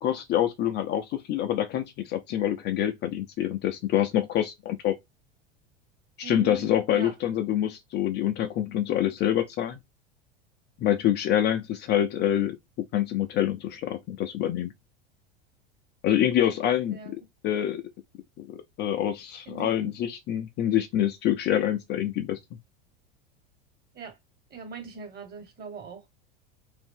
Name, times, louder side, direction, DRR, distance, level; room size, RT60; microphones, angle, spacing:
voice 1, 0.0-5.0 6.2-9.8 10.8-12.6 12.9-14.7 16.0-17.0 17.4-17.8 18.4-22.6, left 11 dB, 35° left, 0.5 m, -26 dB
voice 2, 6.2-7.1 16.9-17.1 19.5-19.9 23.9-24.2 24.5-26.1, right 6 dB, 30° right, 1.5 m, -41 dB
2.6 x 2.5 x 3.6 m
figure-of-eight pair, 80°, 31 cm